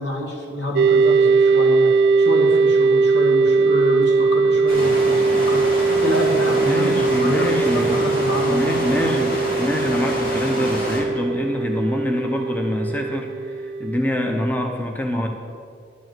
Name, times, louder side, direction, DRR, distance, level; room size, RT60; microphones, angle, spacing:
voice 1, 0.0-1.9 2.2-9.3, left 1 dB, 85° left, 0 dB, 2.1 m, -27 dB
sound 1, 0.8-14.7, right 4 dB, 70° right, 0.4 m, -20 dB
sound 2, 4.7-11.0, equal, 50° left, 2.5 m, -28 dB
voice 2, 6.4-8.1 8.4-15.3, left 1 dB, 10° left, 3 dB, 0.7 m, -25 dB
11.0 x 5.3 x 7.6 m, 2.2 s
head